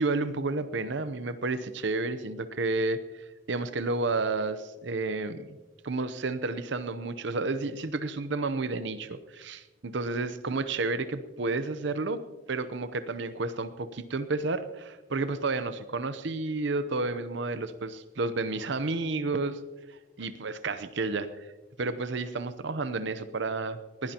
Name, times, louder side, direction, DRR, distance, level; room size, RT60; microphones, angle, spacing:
voice 1, 0.0-5.6 5.8-12.2 12.5-19.6 19.9-21.5 21.8-24.1, right 3 dB, 65° right, 11 dB, 0.8 m, -31 dB
21.0 x 16.5 x 2.9 m, 1.2 s
head